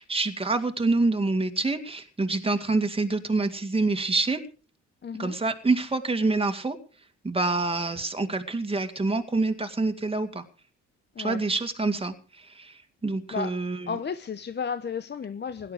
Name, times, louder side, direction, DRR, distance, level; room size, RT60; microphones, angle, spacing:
voice 1, 0.0-4.4 5.2-6.8 7.2-10.4 11.2-14.0, right 3 dB, 20° right, 7 dB, 2.3 m, -26 dB
voice 2, 5.0-5.3 11.2-11.4 13.3-13.5 13.9-15.7, left 6 dB, 35° left, 11 dB, 1.0 m, -33 dB
17.5 x 11.5 x 5.0 m, 0.37 s
cardioid pair, 90°, 30 cm